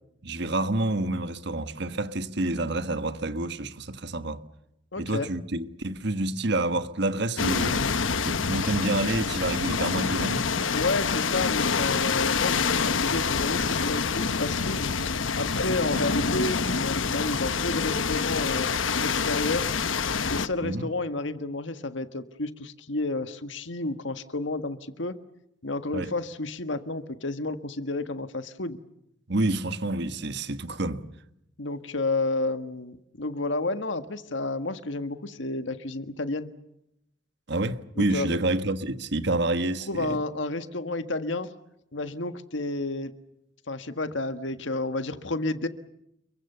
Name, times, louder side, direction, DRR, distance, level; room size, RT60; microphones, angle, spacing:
voice 1, 0.2-4.4 5.0-7.8 8.2-10.5 15.9-16.1 20.6-20.9 25.9-26.1 29.3-31.0 37.5-40.2, right 2 dB, 60° right, 1.5 m, -28 dB
voice 2, 4.9-5.3 10.7-14.9 15.3-18.7 19.0-19.7 20.3-25.2 25.6-28.8 31.6-36.5 38.0-38.4 39.9-41.5 41.9-43.1 43.7-45.7, left 2 dB, 70° left, 1.5 m, -31 dB
sound 1, 7.4-20.5, left 5 dB, 85° left, 1.1 m, -26 dB
29.5 x 23.0 x 6.8 m
head